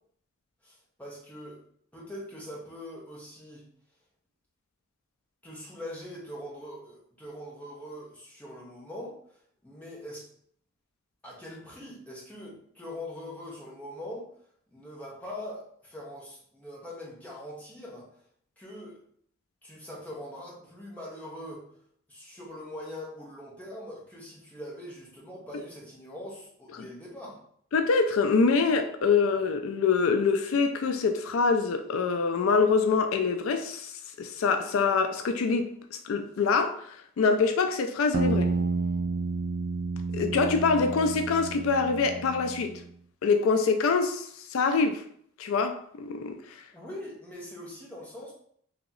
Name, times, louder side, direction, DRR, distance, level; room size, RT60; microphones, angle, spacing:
voice 1, 0.6-1.6 1.9-3.6 5.4-9.2 9.6-10.2 11.2-14.3 14.7-18.1 18.6-19.0 19.6-21.6 22.1-27.4 46.7-48.3, left 1 dB, 5° left, 1.0 m, -42 dB
voice 2, 27.7-38.5 40.1-42.7 43.2-45.0 45.4-46.4, left 4 dB, 75° left, 0.3 m, -25 dB
sound 1, 38.1-42.8, right 4 dB, 45° right, 0.3 m, -30 dB
2.9 x 2.9 x 3.8 m
head